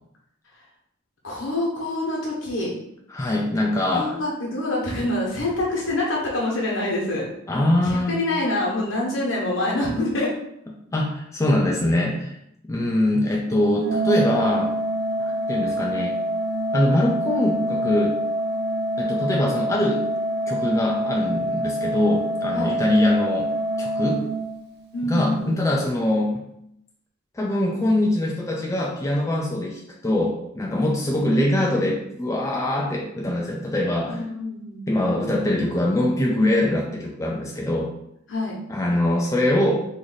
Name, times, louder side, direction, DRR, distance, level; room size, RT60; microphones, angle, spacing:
voice 1, 1.2-2.7 3.8-7.3 7.8-10.3 22.5-22.8 24.9-25.5 34.1-34.9 38.3-38.6, left 1 dB, 65° left, -3 dB, 1.1 m, -26 dB
voice 2, 3.1-4.2 7.5-8.2 10.9-12.4 12.7-14.7 15.2-16.1 16.7-18.1 19.0-20.0 20.5-23.5 23.8-24.2 25.1-26.4 27.3-34.2 34.9-37.9 38.7-39.9, left 1 dB, 15° left, -2 dB, 0.3 m, -23 dB
Organ, 13.8-24.9, right 1 dB, 50° right, 0.5 m, -26 dB
3.1 x 2.6 x 3.9 m, 0.77 s
head